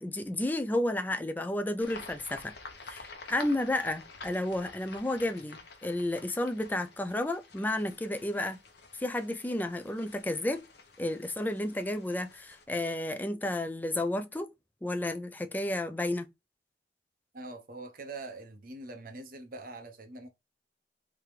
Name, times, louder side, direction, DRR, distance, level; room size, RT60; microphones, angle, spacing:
voice 1, 0.0-2.5 2.8-8.6 9.0-10.6 11.0-14.5 14.8-16.3, left 1 dB, 10° left, 0.4 m, -32 dB
sound 1, 1.8-12.6, left 4 dB, 65° left, 0.9 m, -50 dB
voice 2, 17.3-20.3, right 2 dB, 55° right, 0.9 m, -43 dB
3.6 x 2.9 x 3.2 m
head